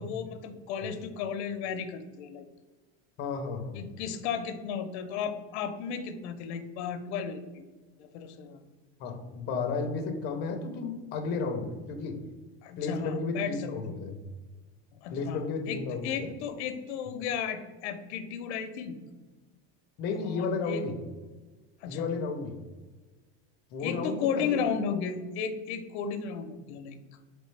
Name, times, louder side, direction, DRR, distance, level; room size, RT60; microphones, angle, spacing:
voice 1, 0.0-2.4 3.8-7.6 8.0-8.6 12.6-13.7 15.0-19.0 20.2-20.8 21.8-22.1 23.8-27.0, left 7 dB, 90° left, 9 dB, 0.6 m, -34 dB
voice 2, 3.2-3.8 9.0-12.2 12.8-14.2 15.1-16.4 20.0-20.9 21.9-22.5 23.7-24.6, left 4 dB, 30° left, 5 dB, 0.5 m, -33 dB
4.3 x 3.1 x 3.1 m, 1.3 s
cardioid pair, 160°, 33 cm